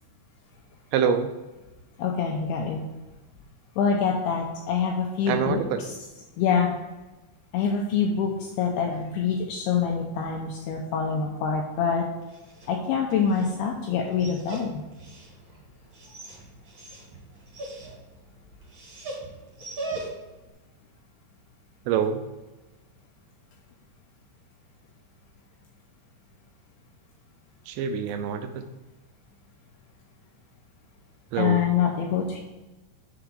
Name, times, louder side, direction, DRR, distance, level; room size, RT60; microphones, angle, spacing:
voice 1, 0.9-1.3 5.3-5.8 21.9-22.3 27.7-28.7 31.3-31.7, right 7 dB, 85° right, 8 dB, 2.7 m, -26 dB
voice 2, 2.0-2.9 3.8-5.6 6.4-6.8 7.5-12.1 12.7-14.8 31.4-32.4, left 6 dB, 85° left, 0 dB, 2.3 m, -25 dB
Dog, 12.2-20.4, right 2 dB, 65° right, 1.2 m, -41 dB
7.0 x 3.9 x 6.2 m, 1.1 s
omnidirectional pair, 5.2 m